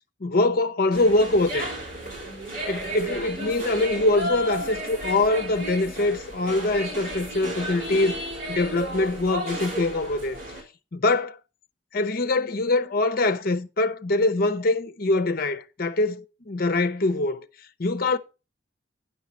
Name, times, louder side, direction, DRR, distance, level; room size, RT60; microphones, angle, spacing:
voice 1, 0.2-1.7 2.2-2.3 2.7-8.2 8.5-10.4 10.9-11.4 11.9-17.5 17.8-18.2, left 2 dB, 50° left, 0.8 m, -23 dB
sound 1, 0.9-10.6, right 1 dB, 50° right, 5.9 m, -33 dB
10.0 x 5.5 x 5.9 m
head